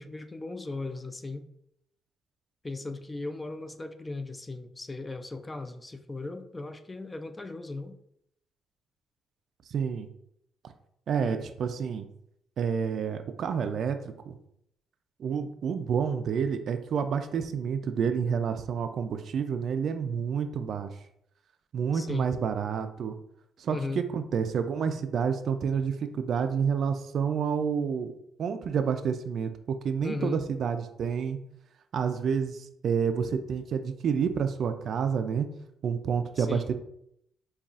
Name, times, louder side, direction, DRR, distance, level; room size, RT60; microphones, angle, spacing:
voice 1, 0.0-1.5 2.6-8.0 11.2-11.5 21.9-22.3 23.7-24.0 30.0-30.4 36.4-36.7, left 2 dB, 20° left, 9 dB, 0.3 m, -37 dB
voice 2, 9.7-10.1 11.1-12.1 12.6-14.3 15.2-20.9 21.7-23.2 23.6-28.1 28.4-31.4 31.9-35.5 35.8-36.7, right 6 dB, 60° right, 9 dB, 0.3 m, -29 dB
5.3 x 2.3 x 2.4 m, 0.75 s
cardioid pair, 90°, 0 cm